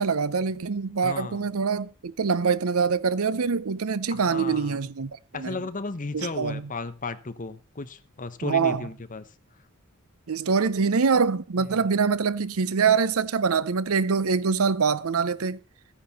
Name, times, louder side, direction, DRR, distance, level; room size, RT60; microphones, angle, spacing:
voice 1, 0.0-5.6 6.1-6.7 8.4-8.8 10.3-15.6, right 5 dB, 75° right, 0.7 m, -24 dB
voice 2, 1.0-1.5 4.1-4.8 5.3-9.2 11.6-11.9, left 3 dB, 40° left, 0.9 m, -35 dB
14.0 x 10.0 x 4.2 m
head